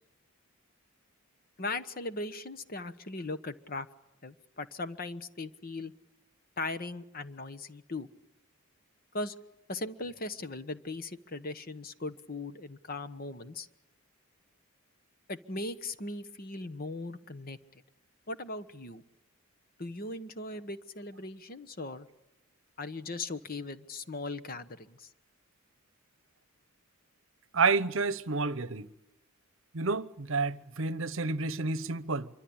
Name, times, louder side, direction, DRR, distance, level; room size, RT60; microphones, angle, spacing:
voice 1, 1.6-3.9 4.2-5.9 6.6-8.1 9.1-9.3 9.7-13.7 15.3-17.6 18.3-19.0 19.8-22.1 22.8-25.1, left 2 dB, 40° left, 1.1 m, -38 dB
voice 2, 27.5-28.9 29.7-32.3, right 4 dB, 60° right, 0.9 m, -29 dB
26.0 x 24.0 x 8.7 m
head